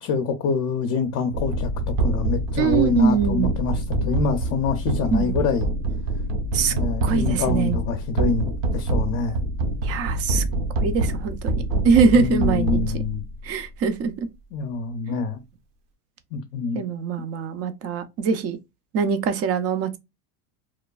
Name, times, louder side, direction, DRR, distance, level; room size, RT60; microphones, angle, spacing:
voice 1, 0.0-5.7 6.7-9.4 12.1-13.3 14.5-15.4 16.3-16.9, left 5 dB, 40° left, 0.6 m, -26 dB
sound 1, 1.3-13.4, right 2 dB, 55° right, 0.8 m, -26 dB
voice 2, 2.6-3.5 5.1-5.3 6.5-6.7 7.0-7.8 9.8-10.4 10.8-13.0 13.4-14.3 16.7-18.6 18.9-20.0, right 6 dB, 35° right, 0.5 m, -23 dB
3.1 x 2.2 x 2.3 m
supercardioid pair, 115°, 45 cm